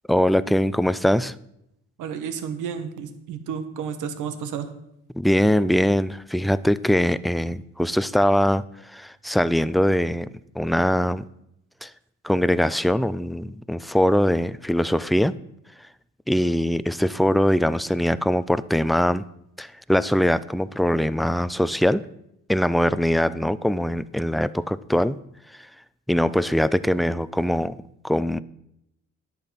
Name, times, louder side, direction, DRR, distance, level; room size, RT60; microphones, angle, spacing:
voice 1, 0.1-1.3 5.2-10.3 10.6-11.2 11.8-11.9 12.2-15.3 16.3-19.2 19.6-22.0 22.5-25.2 26.1-27.7 28.0-28.4, equal, ahead, 16 dB, 0.4 m, -22 dB
voice 2, 2.0-4.7, right 7 dB, 85° right, 9 dB, 1.4 m, -31 dB
11.0 x 7.9 x 5.8 m, 0.77 s
cardioid pair, 90°, 30 cm